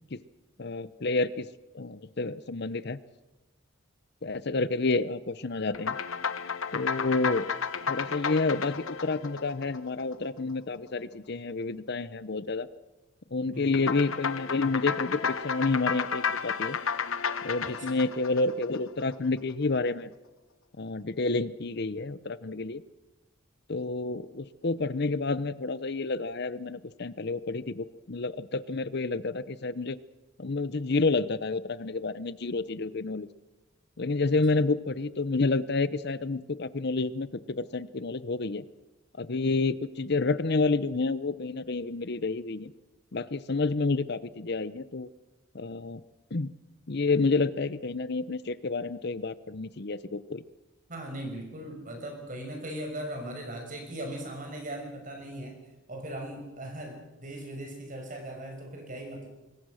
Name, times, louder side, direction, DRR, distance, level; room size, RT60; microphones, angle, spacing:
voice 1, 0.6-1.5 1.7-3.0 4.2-6.0 6.7-7.5 7.9-12.7 13.3-16.8 17.4-20.1 20.8-22.8 23.7-30.0 30.4-33.3 34.0-38.6 39.2-42.7 43.1-45.1 45.5-46.0 46.3-46.5 46.9-50.4, left 3 dB, 55° left, 16 dB, 0.8 m, -29 dB
sound 1, 5.7-10.4 13.7-19.2, left 6 dB, 90° left, 1.3 m, -32 dB
voice 2, 50.9-55.6 55.9-59.3, right 1 dB, 40° right, 3 dB, 5.7 m, -39 dB
26.0 x 21.5 x 6.4 m, 1.0 s
head